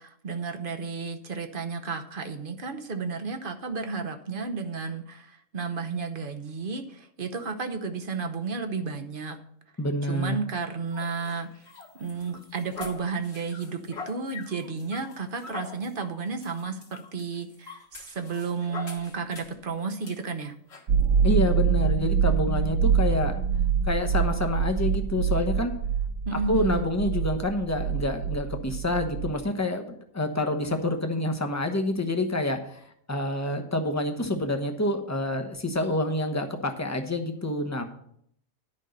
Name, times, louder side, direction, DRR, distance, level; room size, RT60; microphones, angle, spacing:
voice 1, 0.0-9.4 10.0-11.5 11.9-20.5 26.3-26.9, right 4 dB, 45° right, 7 dB, 1.0 m, -32 dB
voice 2, 9.8-10.4 21.2-23.4 23.9-25.7 26.3-37.9, left 1 dB, 15° left, 5 dB, 0.9 m, -28 dB
sound 1, 10.9-19.6 20.0-20.2 20.7-20.9, left 4 dB, 50° left, 1.7 m, -43 dB
sound 2, 20.9-29.3, right 7 dB, 75° right, 1.4 m, -25 dB
11.0 x 5.4 x 6.5 m, 0.68 s
omnidirectional pair, 1.4 m